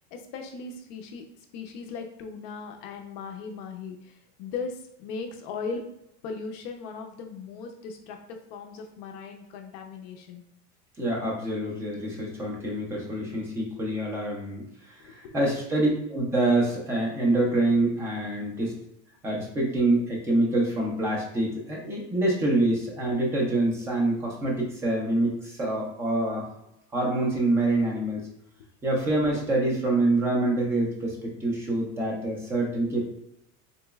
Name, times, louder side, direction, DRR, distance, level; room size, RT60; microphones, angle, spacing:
voice 1, 0.1-1.2 1.5-5.8 6.2-10.4 15.0-15.4, left 5 dB, 50° left, 4 dB, 0.5 m, -38 dB
voice 2, 11.0-18.8 19.2-26.5 26.9-28.2 28.8-33.0, right 2 dB, 5° right, -2 dB, 0.3 m, -26 dB
3.8 x 2.9 x 2.2 m, 0.79 s
supercardioid pair, 155°, 40 cm